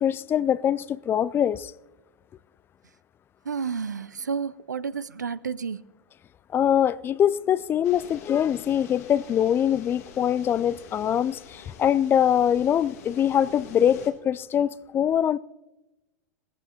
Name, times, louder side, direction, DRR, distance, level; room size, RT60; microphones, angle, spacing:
voice 1, 0.0-1.7 6.5-15.4, left 9 dB, 25° left, 0.3 m, -23 dB
voice 2, 3.5-5.8, right 6 dB, 85° right, 0.5 m, -31 dB
sound 1, 7.8-14.1, left 7 dB, 60° left, 1.8 m, -46 dB
18.5 x 14.5 x 2.8 m
figure-of-eight pair, 95°, 9 cm